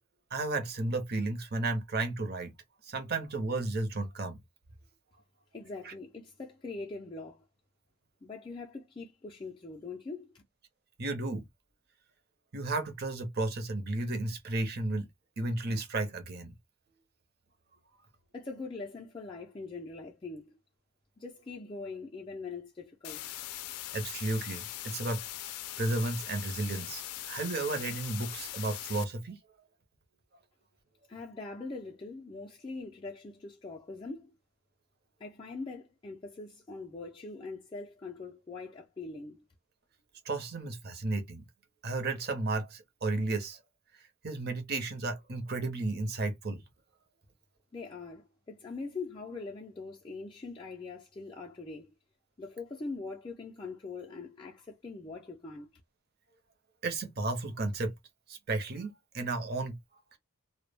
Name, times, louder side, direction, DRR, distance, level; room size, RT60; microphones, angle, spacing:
voice 1, 0.3-2.5 2.8-4.4 5.8-5.9 11.0-11.4 12.5-15.1 15.4-16.5 23.9-25.2 25.8-29.4 40.2-41.4 41.8-43.6 44.2-46.6 56.8-57.9 58.3-59.8, right 2 dB, 45° right, 0.7 m, -33 dB
voice 2, 5.5-7.4 8.2-10.4 18.3-20.5 21.2-23.4 31.1-34.3 35.2-39.4 47.7-51.9 52.4-55.7, left 3 dB, 20° left, 0.3 m, -42 dB
sound 1, 23.0-29.0, left 13 dB, 90° left, 0.4 m, -41 dB
2.2 x 2.1 x 3.2 m
head